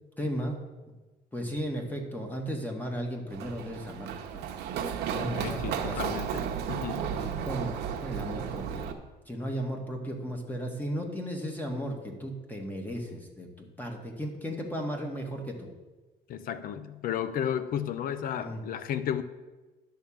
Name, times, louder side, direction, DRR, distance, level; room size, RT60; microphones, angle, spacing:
voice 1, 0.2-0.6 1.3-4.4 5.1-6.0 7.1-8.9 9.2-15.7 18.3-18.6, equal, 10° left, 1 dB, 1.5 m, -35 dB
Run, 3.3-8.9, right 8 dB, 85° right, 0.9 m, -33 dB
voice 2, 5.2-7.1 16.3-19.2, left 9 dB, 60° left, 12 dB, 0.6 m, -33 dB
10.5 x 3.7 x 7.1 m, 1.2 s
cardioid pair, 110°, 17 cm